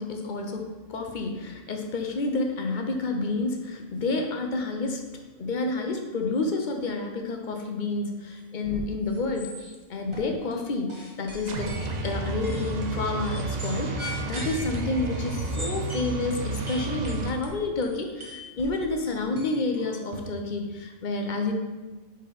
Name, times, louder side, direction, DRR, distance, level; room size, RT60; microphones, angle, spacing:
voice 1, 0.0-5.0 5.4-11.7 12.0-21.5, left 3 dB, 45° left, 3 dB, 0.7 m, -29 dB
sound 1, 8.6-8.9 9.1-9.8 10.1-10.5 10.9-16.1 16.7-20.2, left 1 dB, 25° right, 1.0 m, -40 dB
sound 2, 11.4-17.3, right 3 dB, 70° right, 0.4 m, -31 dB
5.2 x 4.4 x 5.1 m, 1.2 s
omnidirectional pair, 1.4 m